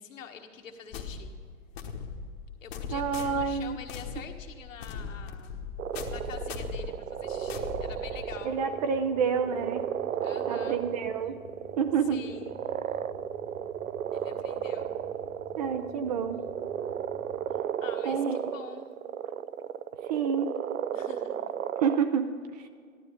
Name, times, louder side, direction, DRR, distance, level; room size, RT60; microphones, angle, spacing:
voice 1, 0.0-1.3 2.6-5.7 6.1-8.6 10.2-10.9 12.1-12.6 14.1-15.0 17.5-19.0 20.9-21.5, left 7 dB, 60° left, 4 dB, 1.5 m, -46 dB
sound 1, 0.9-8.6, left 5 dB, 45° left, 1.3 m, -39 dB
voice 2, 2.9-3.8 8.4-9.8 10.5-11.4 11.8-12.2 15.6-16.4 18.0-18.4 20.1-20.5 21.8-22.3 22.5-22.7, right 6 dB, 30° right, 9 dB, 0.5 m, -28 dB
sound 2, 5.8-22.0, right 9 dB, 75° right, 0.6 m, -34 dB
sound 3, 7.2-17.6, left 4 dB, 15° left, 0.5 m, -53 dB
14.0 x 12.0 x 5.0 m, 2.1 s
figure-of-eight pair, 115°, 42 cm